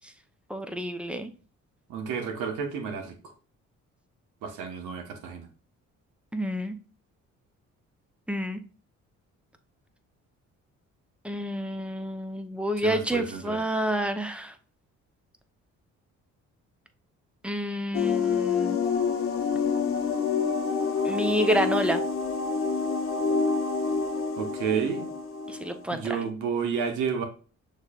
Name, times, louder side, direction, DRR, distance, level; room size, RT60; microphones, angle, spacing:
voice 1, 0.5-1.3 6.3-6.8 8.3-8.6 11.2-14.5 17.4-18.8 21.0-22.0 25.5-26.2, equal, 5° right, 7 dB, 0.6 m, -29 dB
voice 2, 1.9-3.1 4.4-5.5 12.8-13.6 24.4-25.1 25.9-27.2, right 6 dB, 90° right, 4 dB, 1.1 m, -31 dB
sound 1, 17.9-26.3, left 5 dB, 45° left, 0.8 m, -27 dB
6.4 x 3.2 x 2.4 m, 0.38 s
cardioid pair, 90°, 30 cm